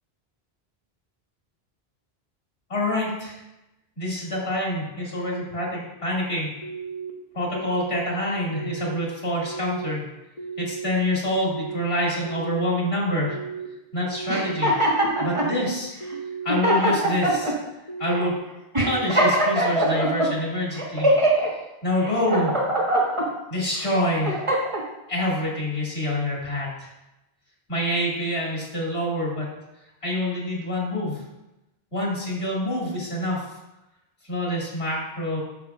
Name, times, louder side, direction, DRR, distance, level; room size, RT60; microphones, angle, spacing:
voice 1, 2.7-3.4 4.0-6.5 7.3-10.1 10.6-13.4 13.9-14.7 15.2-15.9 16.4-17.5 18.0-18.3 18.8-21.5 21.8-22.6 23.5-24.4 25.1-26.9 27.7-29.5 30.0-31.2 31.9-33.4 34.2-35.4, left 1 dB, 75° left, -5 dB, 2.7 m, -26 dB
sound 1, 6.6-7.1 7.6-8.0 8.5-9.0 9.4-9.9 10.4-10.9 11.3-11.8 12.2-12.7 13.2-13.7 14.1-14.6 15.1-15.5 16.0-16.5 16.9-17.4 17.9-18.4 18.8-19.3, right 6 dB, 35° left, 1.0 m, -35 dB
sound 2, 14.3-15.5 16.1-16.2 16.5-17.5 18.1-18.3 18.7-20.3 20.8-21.5 22.0-23.3 23.8-24.8, right 1 dB, 30° right, 1.5 m, -22 dB
10.0 x 6.7 x 2.4 m, 0.95 s
omnidirectional pair, 1.1 m